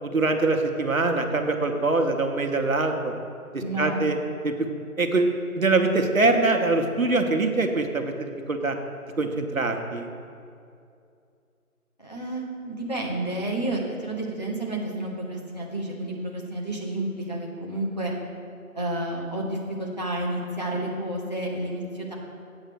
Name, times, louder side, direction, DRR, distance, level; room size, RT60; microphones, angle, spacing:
voice 1, 0.0-3.1 3.8-4.2 4.4-4.7 5.0-8.8 9.2-10.1, right 3 dB, 65° right, 5 dB, 0.9 m, -23 dB
voice 2, 3.6-4.0 12.0-18.1 18.7-22.1, right 1 dB, 30° left, -3 dB, 0.9 m, -30 dB
8.0 x 5.5 x 6.7 m, 2.4 s
figure-of-eight pair, 170°, 44 cm